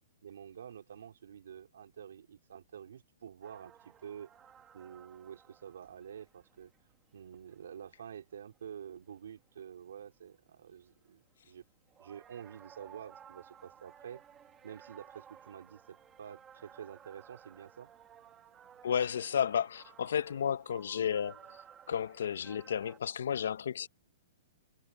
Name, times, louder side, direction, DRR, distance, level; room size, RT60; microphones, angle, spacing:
voice 1, 0.2-4.3 4.7-6.7 7.1-11.6 12.0-14.2 14.6-17.9, right 8 dB, 80° right, 4.3 m, -48 dB
sound 1, 3.4-10.1 10.6-11.0 11.3-23.0, right 8 dB, 10° right, 1.6 m, -58 dB
voice 2, 18.8-21.4 21.9-23.9, left 8 dB, 70° left, 0.8 m, -32 dB
hypercardioid pair, 175°, 0 cm